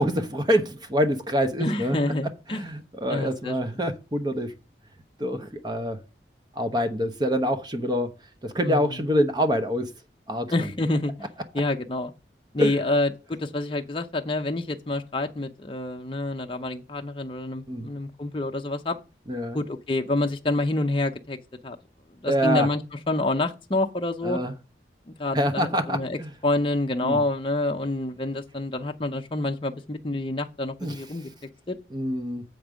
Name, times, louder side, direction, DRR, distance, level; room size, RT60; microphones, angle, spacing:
voice 1, 0.0-2.0 2.5-4.5 5.2-6.0 6.6-8.1 8.4-9.9 10.3-10.7 12.6-12.8 17.7-17.9 19.3-19.6 22.3-22.7 24.2-24.5 25.3-26.3 27.0-27.2 30.8-31.0 31.9-32.4, equal, 25° right, 0.9 m, -25 dB
voice 2, 1.6-2.6 3.1-3.6 8.6-8.9 10.5-11.1 11.5-12.1 12.5-19.0 19.5-21.4 21.6-21.8 22.2-22.8 23.1-24.4 25.1-26.2 26.4-31.3 31.7-31.8, left 2 dB, 30° left, 0.6 m, -27 dB
7.9 x 5.3 x 6.3 m
head